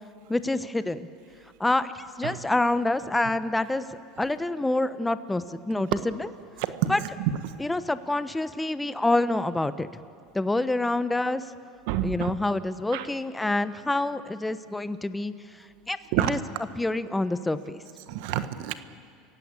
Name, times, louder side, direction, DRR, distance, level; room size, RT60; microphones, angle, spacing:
voice 1, 0.3-1.1 1.6-3.9 4.2-6.3 6.9-7.0 7.6-9.9 10.3-11.4 12.0-15.3 15.9-16.0 16.3-16.4 16.8-17.8, left 2 dB, 10° left, 13 dB, 1.0 m, -27 dB
voice 2, 6.6-7.6 11.9-12.3 12.9-13.0 16.1-16.4 18.1-18.7, right 12 dB, 70° right, 11 dB, 1.3 m, -28 dB
28.0 x 16.0 x 8.8 m, 2.2 s
supercardioid pair, 105°, 0 cm